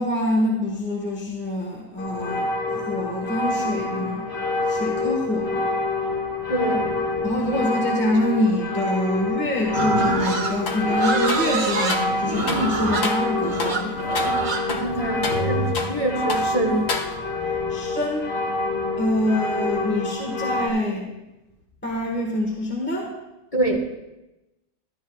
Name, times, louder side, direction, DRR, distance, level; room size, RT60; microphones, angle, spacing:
voice 1, 0.0-4.3 4.6-5.6 7.2-14.0 17.7-18.3 18.9-21.1 21.8-23.1, left 1 dB, 10° left, 0 dB, 1.2 m, -25 dB
sound 1, 2.0-20.7, left 2 dB, 55° left, 2.2 m, -27 dB
voice 2, 6.5-7.3 14.7-17.0 17.3-17.7 19.2-19.3 23.5-23.8, right 1 dB, 25° left, -4 dB, 1.6 m, -26 dB
Livestock farm animals working animals, 9.7-15.8, right 3 dB, 55° right, 1.5 m, -26 dB
sound 2, 10.7-10.9 11.3-12.1 12.5-12.7 13.0-13.3 13.6-13.8 14.1-14.4 14.7-16.0 16.3-16.5 16.9-17.4, left 4 dB, 75° left, 1.2 m, -30 dB
13.0 x 12.0 x 2.3 m, 0.97 s
omnidirectional pair, 1.4 m